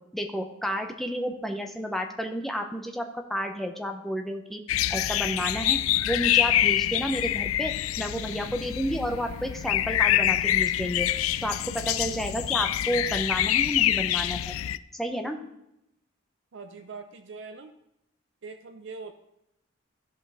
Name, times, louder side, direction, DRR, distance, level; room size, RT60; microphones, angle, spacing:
voice 1, 0.1-4.6 4.9-11.1 11.4-14.5 14.9-15.4, equal, ahead, 4 dB, 0.7 m, -31 dB
sound 1, 4.7-14.8, left 12 dB, 90° left, 0.3 m, -26 dB
voice 2, 16.5-17.7 18.4-19.1, right 4 dB, 65° right, 6 dB, 0.6 m, -42 dB
15.0 x 5.3 x 3.6 m, 0.83 s
head